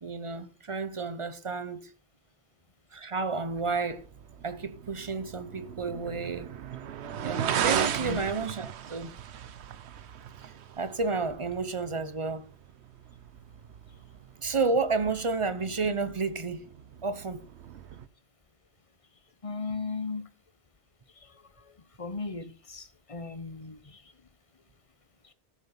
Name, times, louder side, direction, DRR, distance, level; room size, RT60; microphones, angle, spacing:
voice 1, 0.0-1.9 2.9-4.1 4.4-6.5 7.2-9.1 10.4-12.5 14.4-16.7 17.0-17.4, right 4 dB, 30° right, 0.8 m, -31 dB
sound 1, 3.4-18.1, right 9 dB, 75° right, 1.0 m, -37 dB
voice 2, 19.4-20.2 22.0-24.0, left 3 dB, 30° left, 1.0 m, -36 dB
13.5 x 7.0 x 5.5 m
omnidirectional pair, 1.1 m